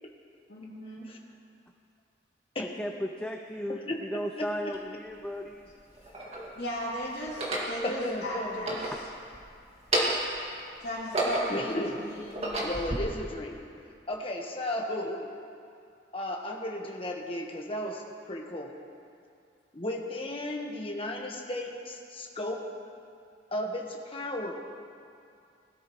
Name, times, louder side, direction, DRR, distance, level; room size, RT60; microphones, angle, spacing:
voice 1, 0.5-1.1 6.6-8.9 10.8-12.7, equal, 65° left, -11 dB, 2.7 m, -36 dB
voice 2, 2.6-5.7 8.9-9.0, equal, 5° left, 3 dB, 0.4 m, -35 dB
voice 3, 3.7-4.7 7.8-8.6 11.5-12.1 12.6-13.6 14.1-15.3 16.1-18.7 19.7-22.6 23.5-24.5, left 1 dB, 30° left, 0 dB, 1.4 m, -34 dB
sound 1, 4.7-4.8 5.7-6.5 7.2-7.7 8.5-9.4 9.7-10.4 10.8-11.7 12.2-13.0, right 1 dB, 35° right, 2.1 m, -30 dB
21.0 x 13.0 x 3.1 m, 2.4 s
head